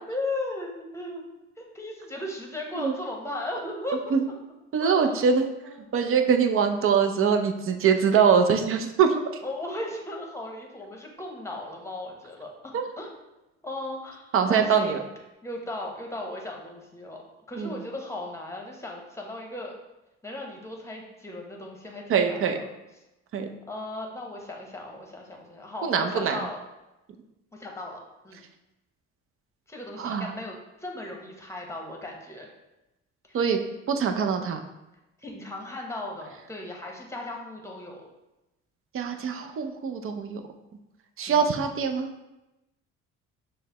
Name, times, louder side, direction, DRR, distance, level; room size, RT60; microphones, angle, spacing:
voice 1, 0.1-1.2 1.6-4.1 4.8-5.3 5.6-5.9 9.4-13.2 13.6-15.0 15.4-19.7 20.2-22.8 23.7-26.6 27.5-28.4 29.7-32.5 33.3-33.4 35.2-38.0 41.3-41.5, left 2 dB, 10° left, 0 dB, 0.9 m, -37 dB
voice 2, 4.7-5.4 5.9-9.2 12.7-12.8 14.3-15.0 17.6-17.7 22.1-22.6 23.3-23.5 25.8-26.4 30.0-30.3 33.3-33.6 33.9-34.6 38.9-40.4 41.2-42.1, right 6 dB, 45° right, 5 dB, 0.5 m, -23 dB
6.3 x 2.1 x 2.9 m, 0.98 s
supercardioid pair, 75°, 30 cm